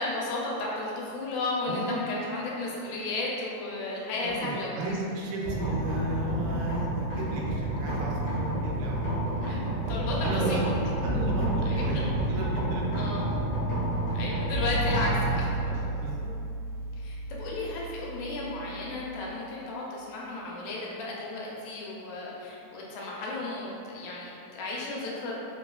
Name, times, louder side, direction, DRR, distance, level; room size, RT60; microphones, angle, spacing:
voice 1, 0.0-4.7 9.4-9.6 9.9-10.6 11.7-12.0 13.0-13.2 14.1-15.5 17.0-25.3, left 2 dB, 80° left, -4 dB, 1.8 m, -33 dB
voice 2, 4.2-9.7 10.2-10.6 11.0-13.3 15.7-16.3, right 2 dB, 85° right, -3 dB, 2.0 m, -34 dB
sound 1, 5.4-19.3, right 1 dB, 60° left, 1.7 m, -30 dB
4.6 x 2.3 x 2.2 m, 2.7 s
omnidirectional pair, 3.4 m